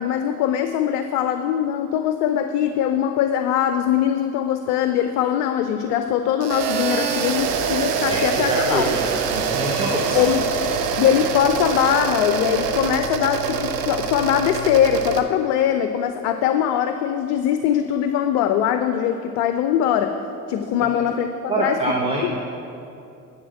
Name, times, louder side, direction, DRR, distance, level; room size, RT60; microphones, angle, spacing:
voice 1, 0.0-8.9 10.1-10.4 11.0-20.2 20.5-21.8 22.2-22.4, left 9 dB, 40° left, 8 dB, 0.4 m, -21 dB
sound 1, 6.4-15.2, right 6 dB, 45° right, 0.8 m, -24 dB
voice 2, 8.1-9.0 9.3-10.4 20.9-21.0 21.5-22.4, right 1 dB, 10° right, -3 dB, 1.0 m, -25 dB
9.9 x 4.4 x 7.6 m, 2.7 s
figure-of-eight pair, 60°, 46 cm